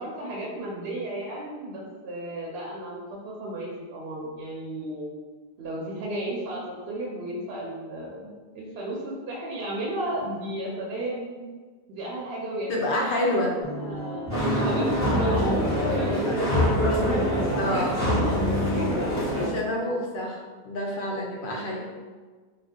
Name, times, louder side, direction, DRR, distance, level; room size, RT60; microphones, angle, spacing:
voice 1, 0.0-5.1 5.6-11.3 11.9-13.5 13.8-17.6 17.9-19.2, right 1 dB, 70° right, -3 dB, 0.8 m, -34 dB
voice 2, 12.7-13.5 17.6-18.0 19.5-20.4 20.6-21.9, left 1 dB, 60° left, -1 dB, 0.7 m, -27 dB
sound 1, 13.6-18.9, left 2 dB, 35° left, 1.3 m, -33 dB
sound 2, 14.3-19.4, equal, 15° right, 1.0 m, -25 dB
2.5 x 2.3 x 3.5 m, 1.4 s
omnidirectional pair, 1.1 m